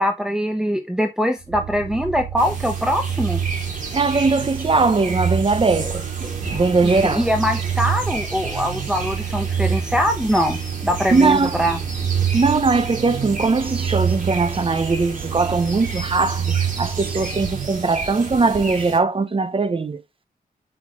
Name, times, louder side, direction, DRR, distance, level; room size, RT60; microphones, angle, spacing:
voice 1, 0.0-3.4 7.0-11.8, equal, 5° right, 1.0 m, -22 dB
sound 1, 1.4-18.3, right 8 dB, 75° right, 0.7 m, -27 dB
sound 2, 2.4-19.0, right 3 dB, 50° right, 3.4 m, -33 dB
voice 2, 3.9-6.1 6.5-7.3 8.5-8.7 11.1-11.6 12.3-20.0, right 4 dB, 35° right, 0.9 m, -20 dB
6.9 x 5.9 x 3.6 m
wide cardioid pair, 95°, 16 cm